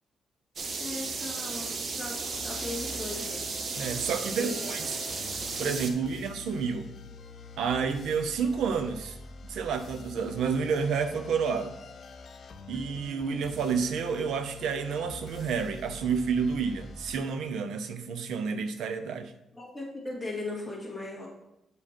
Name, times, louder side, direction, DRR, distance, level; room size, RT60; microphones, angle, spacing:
sound 1, 0.6-5.9, right 4 dB, 45° right, 0.8 m, -34 dB
voice 1, 0.8-3.5 4.4-4.7 5.6-6.1 19.5-21.3, left 2 dB, ahead, -3 dB, 2.1 m, -38 dB
sound 2, 2.3-17.1, left 3 dB, 45° left, 0.6 m, -46 dB
voice 2, 3.7-5.0 5.6-6.9 7.6-9.2 9.5-11.7 12.7-19.3, right 6 dB, 80° right, 10 dB, 0.7 m, -30 dB
8.2 x 5.0 x 4.4 m, 0.85 s
cardioid pair, 150°, 0 cm